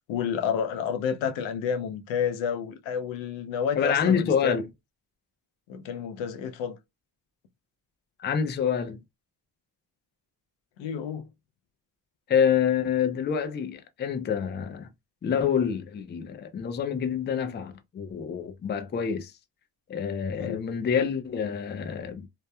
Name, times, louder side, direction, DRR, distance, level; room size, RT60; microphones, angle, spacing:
voice 1, 0.1-4.6 5.7-6.8 10.8-11.3 20.4-20.6, left 7 dB, 90° left, 0.6 m, -30 dB
voice 2, 3.8-4.7 8.2-9.0 12.3-14.9 15.2-19.3 19.9-22.3, left 7 dB, 25° left, 0.4 m, -27 dB
2.9 x 2.1 x 2.2 m
cardioid pair, 105°, 45 cm